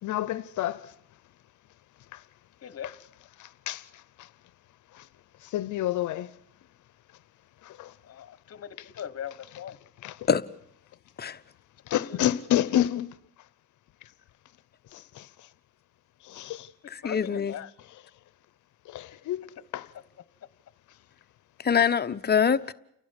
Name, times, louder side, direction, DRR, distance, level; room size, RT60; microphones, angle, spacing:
voice 1, 0.0-0.9 2.1-2.2 3.4-4.3 4.9-5.1 5.4-6.4 7.6-7.9 10.0-10.3 11.9-13.2 14.9-15.5 16.2-16.7 18.9-19.9, left 12 dB, 75° left, 0.8 m, -30 dB
voice 2, 8.0-9.8 11.9-12.3 16.8-17.7 20.9-21.0, left 9 dB, 50° left, 1.4 m, -39 dB
voice 3, 16.9-17.5 21.6-22.7, left 7 dB, 35° left, 1.0 m, -24 dB
30.0 x 11.5 x 9.9 m
cardioid pair, 90°, 30 cm